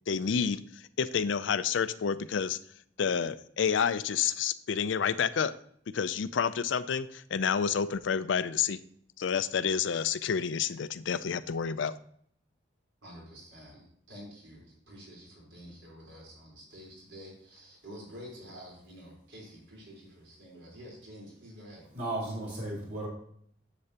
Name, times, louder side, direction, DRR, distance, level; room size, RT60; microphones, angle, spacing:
voice 1, 0.1-2.6 3.0-5.5 5.9-8.8 9.2-11.9, left 7 dB, 80° left, 15 dB, 0.4 m, -29 dB
voice 2, 13.0-21.8, equal, 80° right, -3 dB, 4.0 m, -49 dB
voice 3, 21.9-23.1, right 1 dB, 55° right, -4 dB, 3.8 m, -34 dB
9.8 x 7.8 x 2.9 m, 0.66 s
head